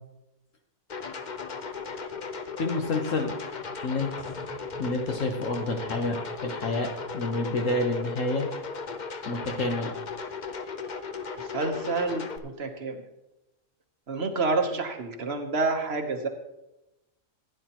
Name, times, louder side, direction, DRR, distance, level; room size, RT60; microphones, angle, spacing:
sound 1, 0.9-12.4, left 4 dB, 40° left, 0.7 m, -36 dB
voice 1, 2.6-3.3 3.8-4.1 4.8-6.9 7.1-8.5 9.3-9.9, left 2 dB, 70° left, 3 dB, 1.4 m, -28 dB
voice 2, 11.4-13.0 14.1-16.3, right 3 dB, 50° right, 5 dB, 1.2 m, -28 dB
16.0 x 9.9 x 3.0 m, 0.95 s
omnidirectional pair, 1.4 m